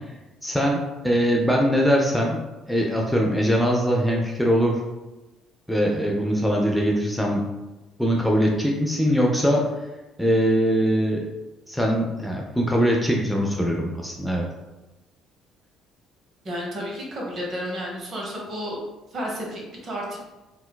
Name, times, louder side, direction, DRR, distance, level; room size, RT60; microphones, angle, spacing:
voice 1, 0.4-2.4 2.7-4.8 5.7-7.4 8.0-9.6 10.2-11.3 11.7-14.5, equal, ahead, -2 dB, 0.4 m, -22 dB
voice 2, 16.4-18.8 19.1-20.2, equal, 45° right, -2 dB, 0.9 m, -31 dB
3.7 x 2.1 x 2.2 m, 1.1 s
figure-of-eight pair, 50°, 0 cm